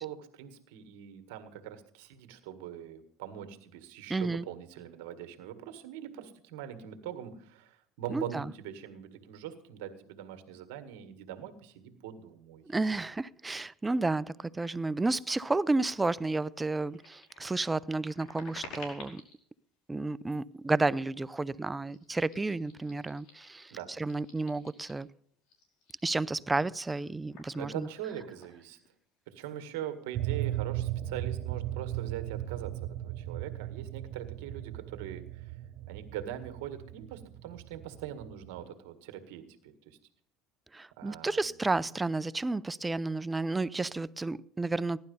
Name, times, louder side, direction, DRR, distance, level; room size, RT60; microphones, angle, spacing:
voice 1, 0.0-12.6 23.7-23.9 27.6-28.8 29.3-35.5 35.9-40.0 41.0-41.4, right 10 dB, 80° right, 1.9 m, -42 dB
voice 2, 4.1-4.4 8.1-8.5 12.6-19.2 19.9-23.7 24.0-25.1 26.0-27.9 40.7-45.0, right 3 dB, 15° right, 0.5 m, -31 dB
sound 1, 16.0-16.1 16.5-19.4 20.2-20.6 21.3-21.5 21.9-25.1 25.4-29.1 29.3-29.5 29.8-30.5, left 3 dB, 65° left, 5.3 m, -53 dB
sound 2, 30.1-38.7, right 13 dB, 65° right, 0.7 m, -37 dB
16.5 x 11.5 x 5.5 m
supercardioid pair, 100°, 0 cm